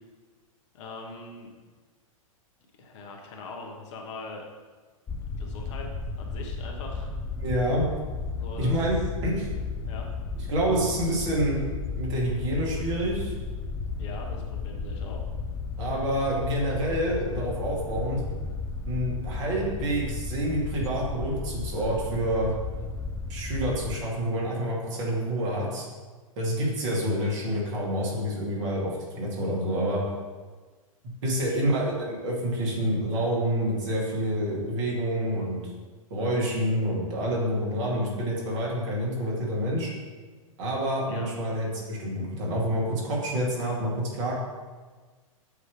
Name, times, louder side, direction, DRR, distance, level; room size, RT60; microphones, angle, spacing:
voice 1, 0.7-1.5 2.8-4.4 5.4-5.9 6.2-7.2 8.4-8.8 9.9-10.1 13.9-15.3 31.5-31.7 41.1-41.3, left 3 dB, 55° left, 1 dB, 1.3 m, -41 dB
sound 1, 5.1-24.0, left 4 dB, 15° left, 0.4 m, -34 dB
voice 2, 7.4-7.8 8.6-8.9 9.2-9.5 10.5-11.6 11.9-13.4 15.8-18.2 18.9-22.5 23.3-25.8 26.4-30.0 31.2-35.6 36.1-39.9 40.6-44.4, equal, 55° right, -4 dB, 2.1 m, -28 dB
8.2 x 3.2 x 4.7 m, 1.4 s
hypercardioid pair, 105°, 18 cm